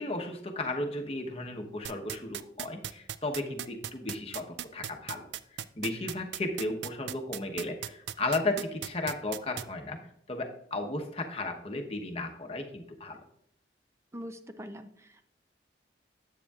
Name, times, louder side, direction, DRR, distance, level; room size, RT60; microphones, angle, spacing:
voice 1, 0.0-10.0 10.3-13.2, left 2 dB, 35° left, 3 dB, 1.0 m, -35 dB
sound 1, 1.8-9.6, right 11 dB, 75° right, 0.4 m, -36 dB
voice 2, 14.1-15.3, equal, 15° right, 9 dB, 0.5 m, -43 dB
9.8 x 8.4 x 2.4 m, 0.73 s
head